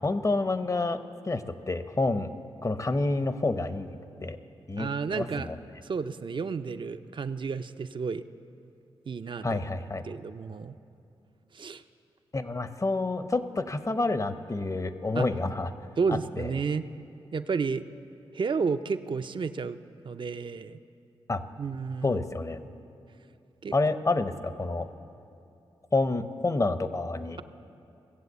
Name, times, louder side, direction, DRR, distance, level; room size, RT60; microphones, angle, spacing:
voice 1, 0.0-2.3 2.6-4.4 4.7-5.6 9.4-10.1 12.3-15.7 16.1-16.5 21.3-21.4 22.0-22.6 23.7-24.9 25.9-27.4, left 2 dB, 30° left, 11 dB, 0.8 m, -28 dB
voice 2, 4.8-5.5 5.8-8.2 9.1-9.6 10.0-10.8 11.5-11.8 15.1-15.3 16.0-16.9 17.3-17.8 18.3-19.8 20.0-20.8 21.6-22.2 23.6-23.7, right 5 dB, 50° right, 10 dB, 0.5 m, -31 dB
17.0 x 7.7 x 8.1 m, 2.6 s
cardioid pair, 45°, 10 cm